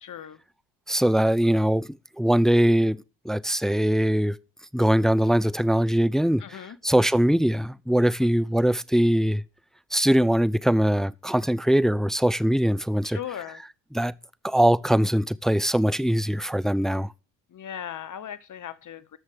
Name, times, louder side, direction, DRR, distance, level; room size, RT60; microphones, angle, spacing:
voice 1, 0.0-0.4 6.4-6.8 8.2-8.3 13.0-13.6 17.5-19.2, left 9 dB, 40° left, 1.2 m, -38 dB
voice 2, 0.9-4.4 4.7-9.4 9.9-13.2 13.9-14.1 14.4-17.1, equal, ahead, 0.5 m, -22 dB
13.5 x 6.4 x 6.2 m
hypercardioid pair, 55°, 47 cm